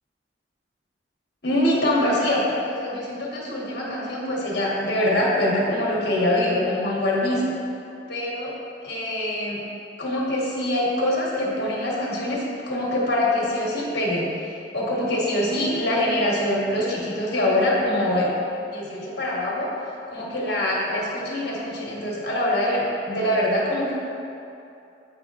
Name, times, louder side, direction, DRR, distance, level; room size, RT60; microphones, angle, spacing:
voice 1, 1.4-7.5 8.1-8.5 8.8-9.6 10.0-18.3 18.7-19.7 20.1-23.9, left 1 dB, 60° left, -4 dB, 1.3 m, -24 dB
8.7 x 5.1 x 2.4 m, 2.7 s
head